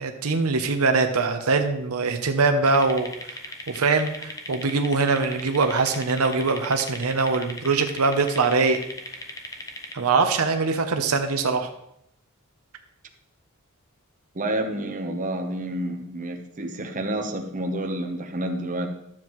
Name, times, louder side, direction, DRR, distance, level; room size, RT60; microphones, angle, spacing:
voice 1, 0.0-3.4 3.7-8.8 9.9-11.7, right 4 dB, 75° right, 6 dB, 0.8 m, -23 dB
sound 1, 2.7-9.9, left 1 dB, 15° left, 0.8 m, -38 dB
voice 2, 14.3-18.9, right 1 dB, 35° right, 3 dB, 0.9 m, -29 dB
12.0 x 7.4 x 3.1 m, 0.78 s
head